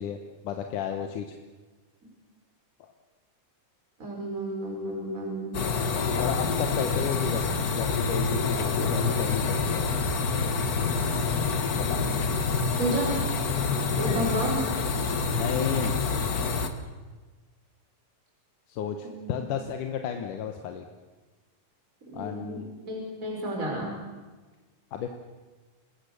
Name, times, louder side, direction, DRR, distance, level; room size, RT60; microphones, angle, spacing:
voice 1, 0.0-1.4 2.8-2.9 6.2-9.8 11.7-12.0 14.0-14.3 15.3-16.0 18.7-20.9 22.1-22.7 24.9-25.1, left 8 dB, 90° left, 5 dB, 2.7 m, -33 dB
voice 2, 4.0-5.6 11.9-12.1 12.8-13.2 14.0-14.6 19.0-19.4 22.1-24.0, right 1 dB, 25° right, -1 dB, 5.3 m, -31 dB
sound 1, 5.5-16.7, left 4 dB, 50° left, 1.1 m, -27 dB
27.5 x 20.0 x 6.9 m, 1.3 s
omnidirectional pair, 3.5 m